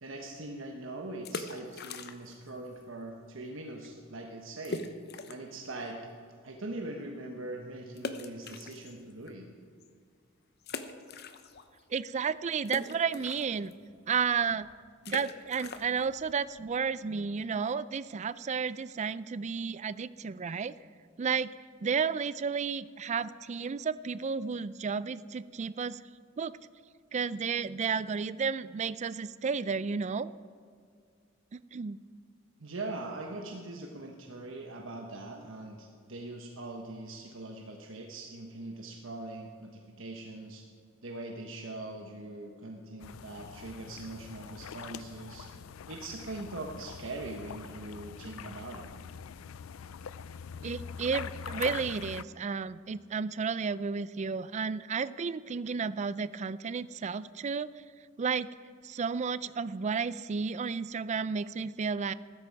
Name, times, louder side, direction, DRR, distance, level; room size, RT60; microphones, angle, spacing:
voice 1, 0.0-4.8 5.3-6.0 6.4-9.5 32.6-40.6 41.0-45.5 45.9-48.9, right 2 dB, 70° right, 1 dB, 1.2 m, -42 dB
sound 1, 1.1-2.5 2.7-2.8 3.4-3.6 3.8-3.9 4.6-5.6 6.0-6.1 8.0-9.3 9.8-9.9 10.6-11.8 12.1-17.6, left 3 dB, 55° left, 0.8 m, -42 dB
voice 2, 11.9-13.7 14.1-14.7 15.1-20.7 21.2-21.5 21.8-26.0 26.4-26.5 27.1-30.3 31.5-32.0 50.6-57.7 58.2-58.5 58.8-62.1, right 5 dB, 35° right, 17 dB, 0.4 m, -32 dB
sound 2, 43.0-52.2, left 6 dB, 90° left, 0.4 m, -43 dB
14.5 x 13.0 x 4.7 m, 2.1 s
head